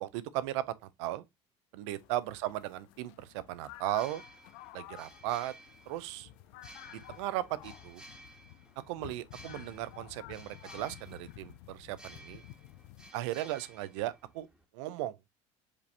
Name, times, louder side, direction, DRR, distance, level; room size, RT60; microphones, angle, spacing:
voice 1, 0.0-1.2 1.7-4.2 4.7-5.5 5.9-6.3 6.9-8.0 8.9-12.4 13.1-14.5 14.7-15.1, right 14 dB, 90° right, 0.5 m, -36 dB
sound 1, 1.9-13.1, left 14 dB, 80° left, 0.4 m, -52 dB
sound 2, 3.8-14.6, right 1 dB, 5° right, 1.2 m, -56 dB
5.0 x 2.7 x 3.3 m
supercardioid pair, 100°, 15 cm